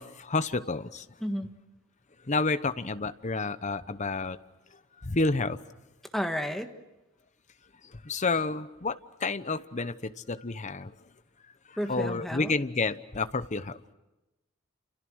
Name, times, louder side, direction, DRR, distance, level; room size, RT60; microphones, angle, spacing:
voice 1, 0.0-1.0 2.3-4.4 5.0-5.6 8.0-10.9 11.9-13.8, left 3 dB, 35° left, 12 dB, 0.9 m, -30 dB
voice 2, 6.1-6.7 11.8-12.5, equal, ahead, 5 dB, 1.6 m, -32 dB
29.0 x 28.5 x 6.4 m, 1.0 s
head